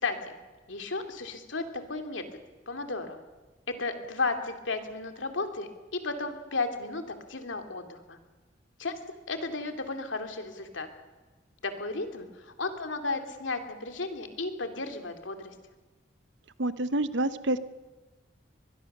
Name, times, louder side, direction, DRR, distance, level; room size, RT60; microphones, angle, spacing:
voice 1, 0.0-0.4 0.7-2.2 2.7-3.2 3.7-8.2 8.8-8.9 9.3-10.9 11.6-15.5, left 3 dB, 85° left, 6 dB, 2.5 m, -34 dB
voice 2, 16.6-17.6, right 1 dB, 70° right, 13 dB, 1.0 m, -27 dB
23.0 x 21.0 x 6.7 m, 1.2 s
head